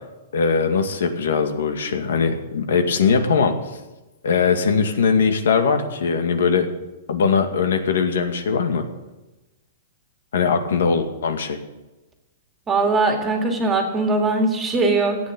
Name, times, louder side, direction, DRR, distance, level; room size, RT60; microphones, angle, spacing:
voice 1, 0.3-3.5 4.2-6.7 7.1-8.8 10.3-11.6, left 5 dB, 80° left, 6 dB, 2.2 m, -20 dB
voice 2, 12.7-15.2, right 3 dB, 10° right, 3 dB, 2.2 m, -20 dB
15.0 x 9.1 x 8.8 m, 1.1 s
hypercardioid pair, 165°, 0 cm